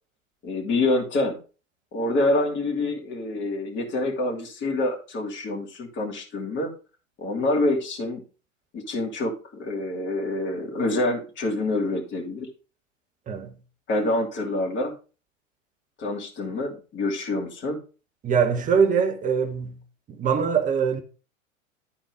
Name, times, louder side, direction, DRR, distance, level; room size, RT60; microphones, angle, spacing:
voice 1, 0.4-1.4 1.9-6.7 7.2-8.2 8.7-12.5 13.9-14.9 16.0-17.8, left 2 dB, 30° left, 2.9 m, -26 dB
voice 2, 18.2-19.8 20.1-21.0, right 6 dB, 20° right, 1.2 m, -23 dB
12.0 x 4.4 x 4.9 m
figure-of-eight pair, 95°, 40 cm